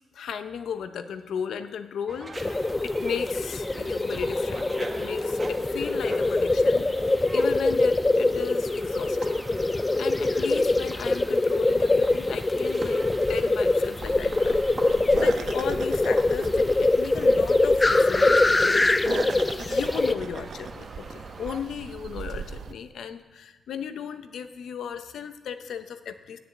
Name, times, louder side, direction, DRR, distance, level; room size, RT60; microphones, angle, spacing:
voice 1, 0.0-9.4 10.0-13.0 13.3-26.4, left 7 dB, 80° left, 10 dB, 0.7 m, -36 dB
sound 1, 2.1-21.6, right 2 dB, 25° right, 1.2 m, -43 dB
sound 2, 2.4-20.1, left 2 dB, 20° left, 0.4 m, -23 dB
sound 3, 14.0-22.7, right 6 dB, 60° right, 0.6 m, -39 dB
9.8 x 7.0 x 8.4 m, 1.1 s
wide cardioid pair, 120°, 0 cm